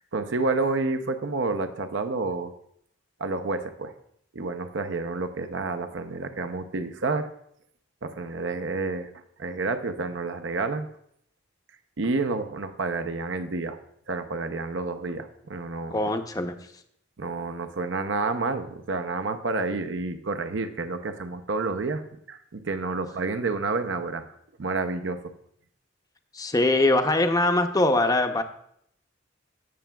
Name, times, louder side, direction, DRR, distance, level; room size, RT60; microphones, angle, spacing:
voice 1, 0.1-2.5 3.2-3.9 4.3-7.3 8.0-9.1 9.4-10.9 12.0-13.8 14.1-16.0 17.2-22.0 22.3-24.2 24.6-25.2, right 3 dB, 70° right, 9 dB, 0.6 m, -29 dB
voice 2, 15.9-16.5 26.3-28.4, left 2 dB, 20° left, 7 dB, 0.6 m, -22 dB
16.0 x 6.8 x 2.3 m, 0.70 s
head